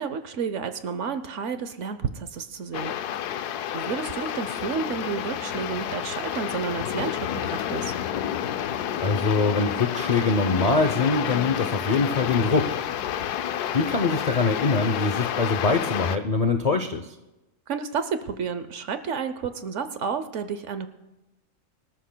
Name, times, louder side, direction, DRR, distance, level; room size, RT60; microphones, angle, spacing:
voice 1, 0.0-2.9 3.7-7.9 17.7-20.9, right 6 dB, 60° right, 10 dB, 0.9 m, -31 dB
sound 1, 2.7-16.2, left 10 dB, 85° left, 1.2 m, -30 dB
voice 2, 9.0-12.8 13.7-17.1, left 3 dB, 60° left, 6 dB, 0.4 m, -23 dB
24.5 x 13.0 x 2.2 m, 0.98 s
omnidirectional pair, 1.6 m